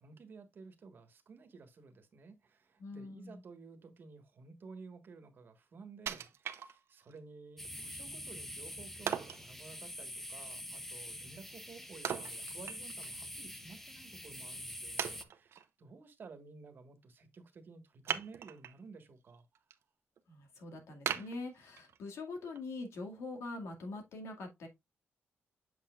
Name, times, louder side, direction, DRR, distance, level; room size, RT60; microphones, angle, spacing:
voice 1, 0.0-19.6, right 4 dB, 50° right, 1.5 m, -54 dB
voice 2, 2.8-3.4 20.3-24.7, left 3 dB, 85° left, 2.1 m, -43 dB
Wood, 6.1-7.2 7.6-7.7 9.1-9.5 12.0-13.2 13.5-13.6 14.3-14.4 15.0-15.7 18.0-18.8 19.3-19.7 20.2-20.3 21.1-22.1 22.5-22.6, right 9 dB, 70° right, 0.8 m, -39 dB
sound 1, 7.6-15.2, left 1 dB, 5° left, 0.7 m, -45 dB
8.0 x 5.9 x 2.4 m
cardioid pair, 125°, 5 cm